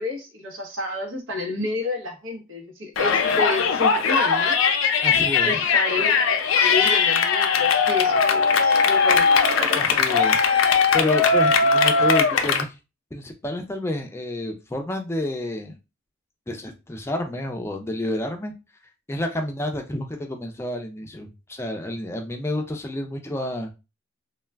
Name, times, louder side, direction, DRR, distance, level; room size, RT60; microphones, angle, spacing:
voice 1, 0.0-4.6 5.4-6.3 6.5-9.3 9.6-10.0, left 2 dB, 85° right, 0.9 m, -30 dB
Yell, 3.0-12.6, left 5 dB, 85° left, 0.4 m, -19 dB
voice 2, 5.0-5.6 9.8-12.7 13.1-15.8 16.5-18.5 19.1-23.7, left 1 dB, 15° left, 0.4 m, -30 dB
2.2 x 2.2 x 3.3 m
head